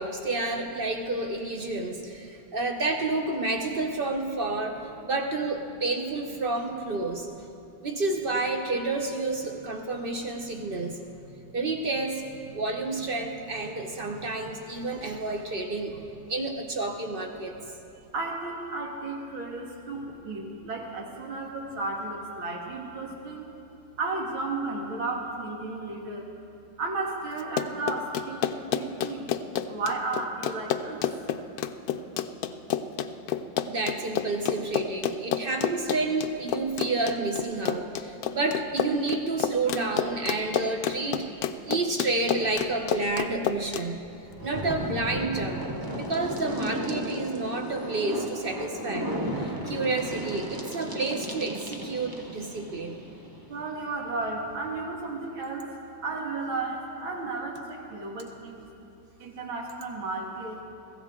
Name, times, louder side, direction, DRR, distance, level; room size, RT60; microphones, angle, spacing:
voice 1, 0.0-7.3 7.8-11.0 11.5-12.2 12.5-17.5 33.6-41.3 41.7-44.0 44.4-45.6 45.9-49.1 49.4-53.0, right 2 dB, 55° right, 3 dB, 0.6 m, -30 dB
voice 2, 18.1-23.5 24.0-26.3 26.8-29.3 29.7-31.1 32.8-32.9 53.5-55.7 56.0-58.7 59.2-60.6, right 3 dB, 90° right, -1 dB, 2.6 m, -33 dB
Run, 27.4-43.8, left 9 dB, 75° left, 0.9 m, -29 dB
sound 1, 42.2-54.9, equal, 15° right, 0.7 m, -35 dB
23.0 x 15.0 x 3.7 m, 2.8 s
omnidirectional pair, 2.1 m